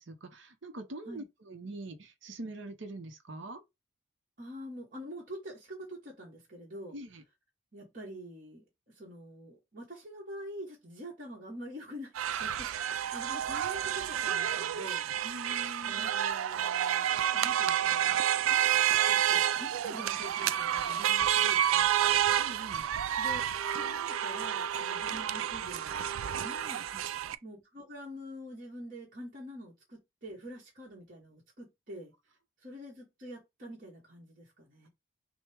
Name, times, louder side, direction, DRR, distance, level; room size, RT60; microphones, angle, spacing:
voice 1, 0.0-3.6 6.9-7.2 15.2-16.1 22.3-22.9 26.9-27.0, right 1 dB, 70° right, 0.8 m, -44 dB
voice 2, 4.4-7.0 7.7-12.1 12.4-15.1 15.8-18.2 19.1-22.3 23.2-23.4 23.7-26.8 27.4-32.1 32.6-34.9, equal, 40° right, 1.2 m, -46 dB
sound 1, 12.2-27.4, right 10 dB, 90° right, 0.3 m, -29 dB
6.1 x 2.1 x 3.5 m
head